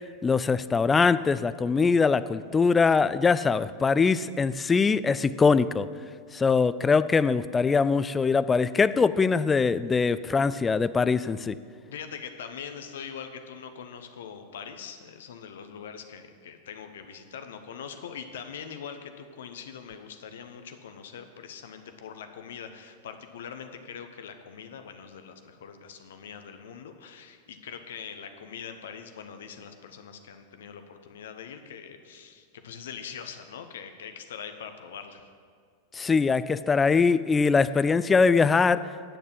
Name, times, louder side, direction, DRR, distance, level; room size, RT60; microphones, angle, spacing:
voice 1, 0.2-5.9 6.3-11.6 35.9-39.2, left 5 dB, 15° left, 15 dB, 0.3 m, -22 dB
voice 2, 11.9-35.2, left 7 dB, 60° left, 7 dB, 0.9 m, -42 dB
10.0 x 6.6 x 7.4 m, 2.1 s
figure-of-eight pair, 90°, 0 cm